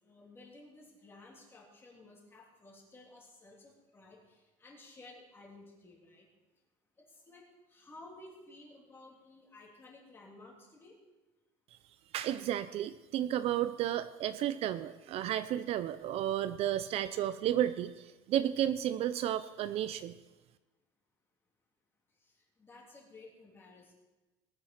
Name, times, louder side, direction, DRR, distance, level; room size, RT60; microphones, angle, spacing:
voice 1, 0.0-6.3 7.0-11.0 22.2-23.9, left 2 dB, 15° left, -2 dB, 3.3 m, -55 dB
voice 2, 12.1-20.1, right 11 dB, 50° right, 12 dB, 0.5 m, -32 dB
19.5 x 8.8 x 4.5 m, 1.2 s
cardioid pair, 150°, 13 cm